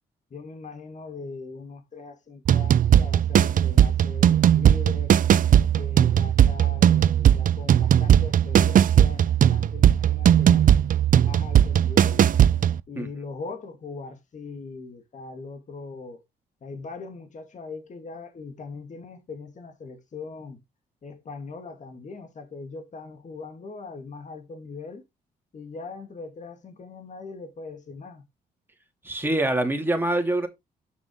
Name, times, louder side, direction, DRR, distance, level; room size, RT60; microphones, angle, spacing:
voice 1, 0.3-5.2 5.8-10.8 11.2-12.3 12.9-16.2 16.6-20.6 21.0-25.0 25.5-28.2, left 4 dB, 45° left, 1.9 m, -40 dB
sound 1, 2.5-12.8, right 10 dB, 50° right, 0.5 m, -18 dB
voice 2, 29.0-30.5, right 1 dB, 10° right, 2.6 m, -24 dB
7.4 x 6.1 x 3.7 m
cardioid pair, 75°, 17 cm